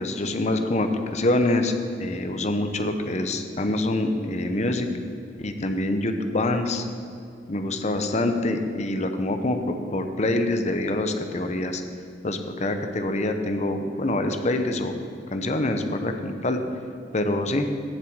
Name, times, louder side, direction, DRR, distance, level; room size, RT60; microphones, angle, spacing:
voice 1, 0.0-1.7 2.0-4.9 5.4-6.9 7.5-9.6 9.9-11.8 12.2-14.9 15.3-16.6 17.1-17.7, left 2 dB, 40° left, 6 dB, 0.8 m, -25 dB
7.6 x 7.4 x 7.7 m, 2.5 s
head